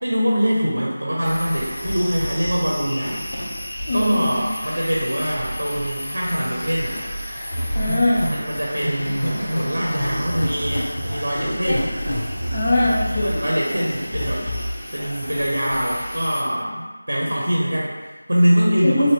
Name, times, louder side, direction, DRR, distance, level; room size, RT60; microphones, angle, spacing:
voice 1, 0.0-3.3 3.9-7.1 8.3-11.9 13.2-14.5 14.9-19.1, equal, 80° right, -4 dB, 0.6 m, -23 dB
sound 1, 1.2-16.4, equal, 65° left, 0.8 m, -29 dB
voice 2, 3.9-4.4 7.7-8.3 11.7-11.8 12.5-13.4 18.8-19.1, left 1 dB, 30° left, -4 dB, 0.5 m, -21 dB
2.9 x 2.8 x 2.9 m, 1.3 s
figure-of-eight pair, 170°, 0 cm